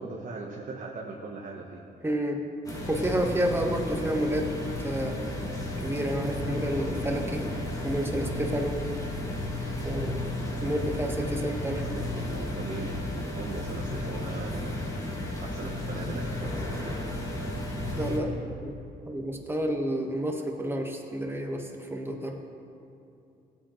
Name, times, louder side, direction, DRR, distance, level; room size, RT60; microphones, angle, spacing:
voice 1, 0.0-1.8 11.7-14.8 15.4-16.9, right 3 dB, 50° right, -1 dB, 1.1 m, -40 dB
voice 2, 2.0-2.4 2.9-4.5 4.8-5.2 5.8-7.4 7.8-8.8 9.8-10.3 10.6-11.8 17.9-18.3 18.6-18.7 19.0-22.4, right 1 dB, 15° right, 2 dB, 1.4 m, -30 dB
sound 1, 2.6-18.2, left 1 dB, 20° left, 2.0 m, -33 dB
16.0 x 8.6 x 3.1 m, 2.7 s
cardioid pair, 80°, 18 cm